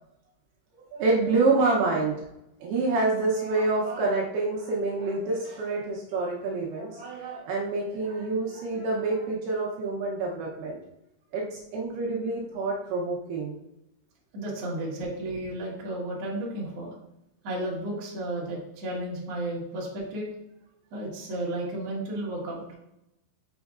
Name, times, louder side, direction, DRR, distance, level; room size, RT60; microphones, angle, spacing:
voice 1, 0.9-2.2 2.6-10.8 11.3-13.6, right 3 dB, 75° right, -2 dB, 2.7 m, -27 dB
voice 2, 14.3-17.0 17.4-20.3 20.9-22.6, right 1 dB, 50° right, -5 dB, 2.2 m, -33 dB
6.2 x 6.1 x 2.4 m, 0.84 s
omnidirectional pair, 4.8 m